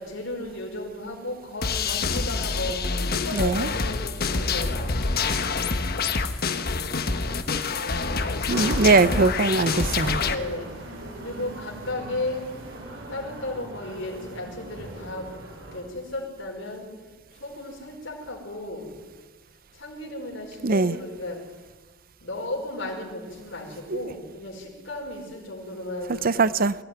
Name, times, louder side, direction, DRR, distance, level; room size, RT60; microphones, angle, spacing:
voice 1, 0.0-5.4 8.5-9.1 10.0-10.7 11.2-12.5 13.1-15.3 15.7-16.9 17.4-18.9 19.7-21.4 22.2-26.4, left 2 dB, 65° left, 4.8 m, -35 dB
sound 1, 1.6-10.4, left 4 dB, 50° left, 1.2 m, -26 dB
voice 2, 3.3-3.7 8.5-10.2 20.6-21.0 23.9-24.0 26.2-26.7, right 3 dB, 50° right, 0.7 m, -21 dB
sound 2, 8.5-15.8, right 2 dB, 65° right, 5.9 m, -39 dB
22.5 x 16.0 x 9.1 m
head